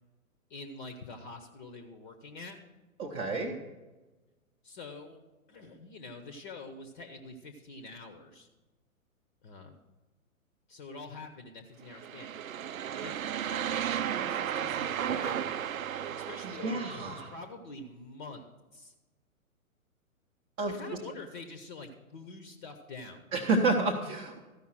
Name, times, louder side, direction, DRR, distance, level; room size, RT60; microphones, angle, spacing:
voice 1, 0.5-2.6 4.6-5.2 5.5-8.5 9.4-9.8 10.7-12.3 13.0-15.7 16.2-18.5 18.7-18.9 20.7-23.3, left 3 dB, 35° left, 7 dB, 0.8 m, -46 dB
voice 2, 3.0-3.5 16.4-17.3 20.6-20.8 23.3-24.4, right 3 dB, 20° right, 1 dB, 0.7 m, -29 dB
sound 1, 11.9-17.3, right 9 dB, 70° right, 0.6 m, -34 dB
13.5 x 5.4 x 6.2 m, 1.2 s
figure-of-eight pair, 120°, 43 cm